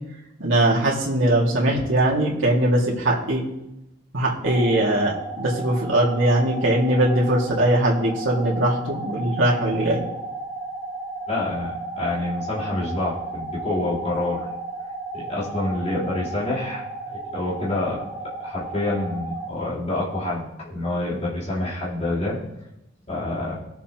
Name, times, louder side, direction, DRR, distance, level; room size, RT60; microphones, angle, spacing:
voice 1, 0.4-3.4 4.1-10.0, right 1 dB, 80° right, -4 dB, 2.2 m, -21 dB
sound 1, 4.4-19.5, right 3 dB, 10° right, 2.0 m, -34 dB
voice 2, 11.3-14.4 15.1-22.4 23.1-23.6, left 2 dB, 35° left, -7 dB, 3.7 m, -27 dB
20.0 x 7.1 x 3.0 m, 0.90 s
head